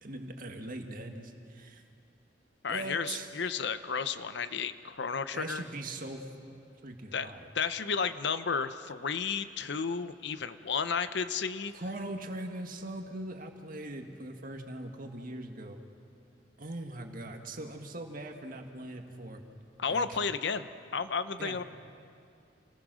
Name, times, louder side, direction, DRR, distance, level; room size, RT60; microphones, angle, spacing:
voice 1, 0.0-1.8 2.7-3.3 5.3-6.2 6.8-7.5 11.7-15.8 16.6-19.4 19.9-20.1 21.4-21.6, right 2 dB, 50° right, 4 dB, 1.9 m, -41 dB
voice 2, 2.6-5.6 7.1-11.7 19.8-20.7 20.9-21.6, left 5 dB, 65° left, 12 dB, 0.8 m, -32 dB
28.5 x 19.5 x 6.4 m, 2.4 s
head